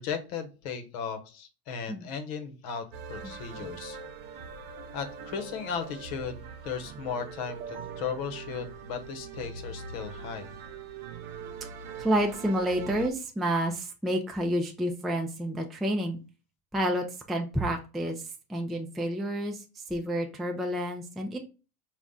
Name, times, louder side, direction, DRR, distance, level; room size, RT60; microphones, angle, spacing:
voice 1, 0.0-4.0 4.9-10.5, left 6 dB, 65° left, 7 dB, 1.0 m, -36 dB
sound 1, 2.9-13.1, right 5 dB, 50° right, 0.7 m, -42 dB
voice 2, 12.0-16.2 16.7-21.4, right 1 dB, ahead, 2 dB, 0.4 m, -29 dB
4.0 x 2.4 x 3.6 m, 0.32 s
hypercardioid pair, 90°, 47 cm